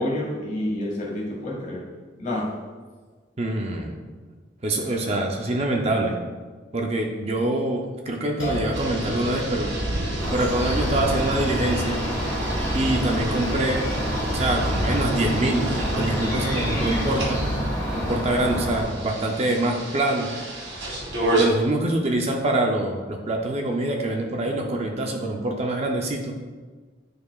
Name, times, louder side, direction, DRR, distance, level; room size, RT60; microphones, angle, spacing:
voice 1, 0.0-1.8 2.2-2.5, left 1 dB, 40° left, -4 dB, 1.9 m, -28 dB
voice 2, 3.4-4.0 4.6-6.2 6.7-9.7 10.3-12.0 12.7-13.9 14.3-17.4 17.9-20.3 21.3-26.3, right 1 dB, 35° right, 2 dB, 0.5 m, -25 dB
sound 1, 8.4-15.3, right 1 dB, 90° left, 1.3 m, -38 dB
sound 2, 8.7-21.4, right 1 dB, 80° right, 1.9 m, -29 dB
sound 3, 10.2-18.8, equal, 15° left, 1.5 m, -28 dB
9.3 x 4.7 x 2.4 m, 1.4 s
head